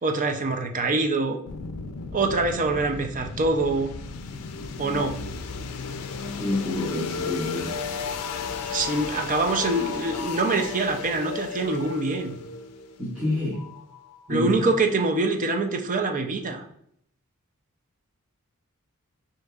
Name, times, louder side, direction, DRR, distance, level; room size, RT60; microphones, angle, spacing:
voice 1, 0.0-1.4 2.1-3.9 4.8-5.2 8.7-12.3 14.3-16.6, right 3 dB, 35° right, 5 dB, 0.5 m, -25 dB
sound 1, 1.5-14.3, left 5 dB, 85° left, 0.4 m, -34 dB
voice 2, 6.3-7.8 13.0-13.6 14.3-14.6, left 1 dB, 5° right, -10 dB, 1.3 m, -28 dB
6.2 x 2.8 x 2.4 m, 0.70 s
head